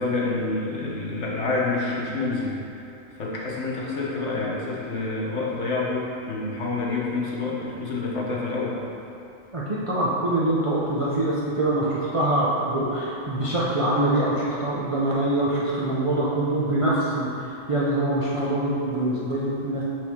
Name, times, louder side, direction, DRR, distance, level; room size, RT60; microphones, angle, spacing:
voice 1, 0.0-2.5 3.1-8.8, left 3 dB, 60° left, -4 dB, 1.2 m, -27 dB
voice 2, 9.5-19.8, right 1 dB, 40° right, -8 dB, 0.4 m, -24 dB
6.3 x 4.3 x 3.6 m, 2.7 s
omnidirectional pair, 1.4 m